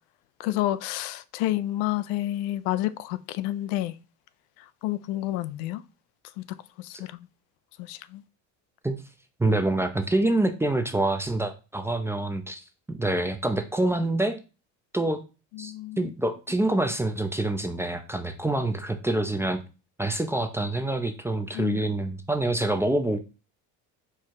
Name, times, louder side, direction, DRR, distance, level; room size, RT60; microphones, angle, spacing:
voice 1, 0.4-3.9 4.8-5.8 6.4-7.3 7.8-8.2 15.5-16.1 21.5-21.8, left 15 dB, 80° left, 0.5 m, -30 dB
voice 2, 9.4-14.4 14.9-15.2 15.6-19.6 20.0-23.2, right 2 dB, 5° right, 0.4 m, -26 dB
4.6 x 2.3 x 4.3 m
supercardioid pair, 100°, 40 cm